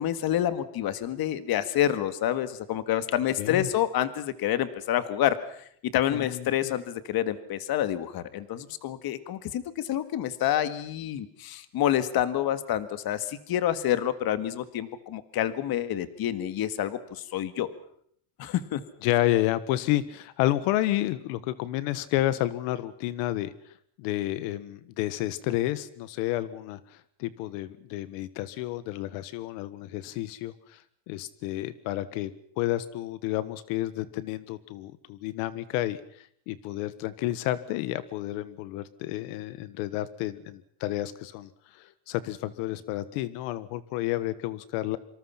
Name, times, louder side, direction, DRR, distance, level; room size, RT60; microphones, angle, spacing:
voice 1, 0.0-5.4 5.9-17.7 18.4-18.8, left 11 dB, 45° left, 12 dB, 1.9 m, -28 dB
voice 2, 3.4-3.7 6.1-6.7 19.0-30.8 31.1-32.3 32.6-45.0, left 15 dB, 85° left, 15 dB, 1.5 m, -30 dB
26.5 x 25.5 x 5.8 m, 0.66 s
cardioid pair, 150°, 50 cm